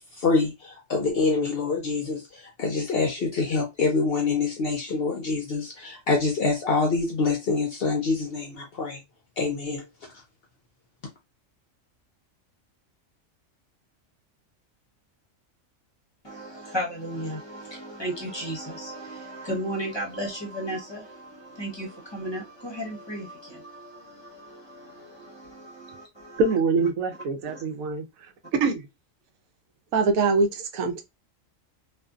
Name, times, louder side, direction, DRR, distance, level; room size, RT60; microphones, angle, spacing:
voice 1, 0.1-9.0 9.4-9.8, left 4 dB, 65° left, 0.6 m, -26 dB
voice 2, 16.2-26.5 27.5-27.6, equal, 25° left, 0.7 m, -35 dB
voice 3, 26.4-28.0 28.6-28.9 29.9-31.0, right 4 dB, 80° right, 1.0 m, -24 dB
2.5 x 2.4 x 2.3 m
omnidirectional pair, 1.4 m